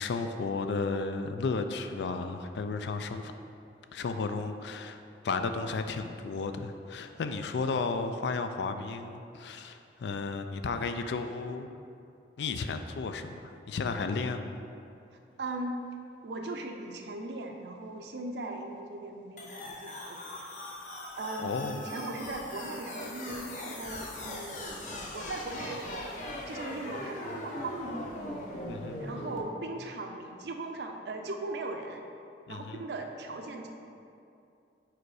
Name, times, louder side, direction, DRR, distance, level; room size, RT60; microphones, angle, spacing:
voice 1, 0.0-3.3 3.9-5.0 5.2-11.7 12.4-14.6 21.4-21.8 28.7-29.0 32.5-32.8, left 4 dB, 75° left, 8 dB, 0.4 m, -33 dB
voice 2, 15.4-15.8 16.2-20.5 21.2-24.9 25.1-26.1 26.5-28.1 29.0-32.0 32.5-33.7, right 2 dB, 75° right, 3 dB, 0.5 m, -39 dB
sound 1, 19.4-29.4, left 1 dB, 45° left, 0.7 m, -40 dB
4.8 x 4.5 x 4.8 m, 2.6 s
head